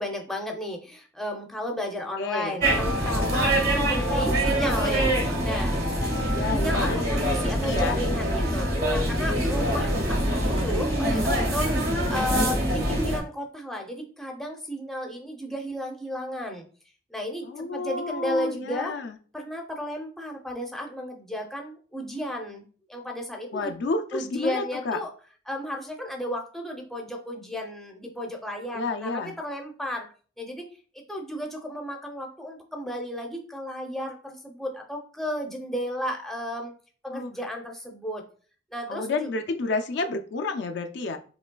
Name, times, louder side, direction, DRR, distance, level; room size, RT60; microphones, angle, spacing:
voice 1, 0.0-16.7 17.1-19.0 19.3-22.6 22.9-23.7 24.1-25.1 25.5-30.1 30.4-30.7 30.9-36.7 37.0-38.2 38.7-39.3, equal, ahead, 1 dB, 0.6 m, -34 dB
voice 2, 2.2-2.6 6.0-7.0 7.7-8.0 17.4-19.2 23.5-25.0 28.7-29.3 37.1-37.3 38.9-41.2, left 3 dB, 60° left, 6 dB, 0.4 m, -30 dB
sound 1, 2.6-13.2, right 1 dB, 55° right, 1.2 m, -24 dB
5.2 x 3.1 x 2.2 m, 0.40 s
head